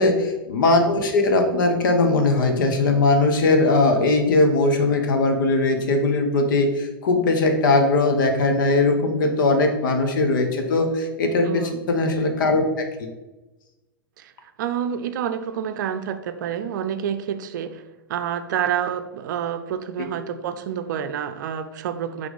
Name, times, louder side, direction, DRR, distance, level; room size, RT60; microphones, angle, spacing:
voice 1, 0.0-12.8, left 2 dB, 60° left, 4 dB, 1.1 m, -20 dB
voice 2, 11.5-11.8 14.2-14.3 14.6-17.8 18.1-22.3, right 9 dB, 55° right, 10 dB, 0.5 m, -28 dB
6.0 x 3.4 x 5.2 m, 1.1 s
figure-of-eight pair, 100°, 12 cm